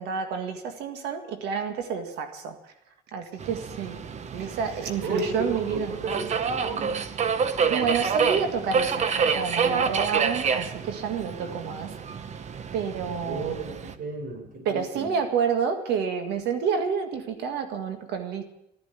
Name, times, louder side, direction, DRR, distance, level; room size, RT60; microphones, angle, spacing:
voice 1, 0.0-2.6 3.1-4.0 4.3-5.9 7.7-11.9 12.7-13.6 14.7-18.4, right 6 dB, 85° right, 7 dB, 1.9 m, -29 dB
Subway metro underground, 3.4-13.9, right 6 dB, 45° right, 1.0 m, -28 dB
voice 2, 5.0-7.1 11.4-11.6 13.2-15.1, right 3 dB, 60° right, 5 dB, 4.4 m, -33 dB
13.0 x 11.0 x 8.2 m, 0.83 s
cardioid pair, 110°, 17 cm